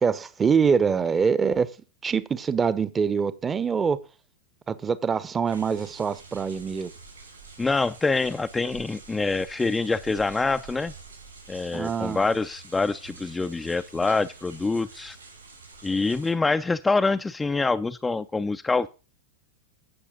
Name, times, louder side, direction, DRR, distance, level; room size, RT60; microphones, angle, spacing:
voice 1, 0.0-1.7 2.0-4.0 4.7-6.9 11.7-12.2, right 6 dB, 20° right, 0.9 m, -24 dB
sound 1, 5.5-16.3, right 4 dB, 75° right, 6.5 m, -47 dB
voice 2, 7.6-10.9 11.5-15.2 15.8-18.9, left 3 dB, 10° left, 0.5 m, -25 dB
16.0 x 6.3 x 3.7 m
figure-of-eight pair, 90°, 0 cm